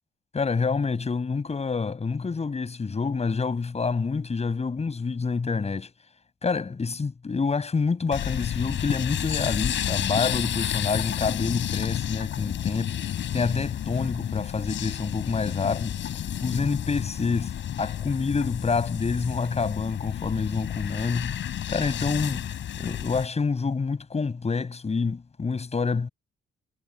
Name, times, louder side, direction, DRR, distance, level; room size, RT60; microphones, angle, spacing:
voice 1, 0.3-5.9 6.4-26.1, left 4 dB, 30° left, 7.9 m, -28 dB
sound 1, 8.1-23.3, left 10 dB, 70° left, 5.8 m, -31 dB
cardioid pair, 90°, 20 cm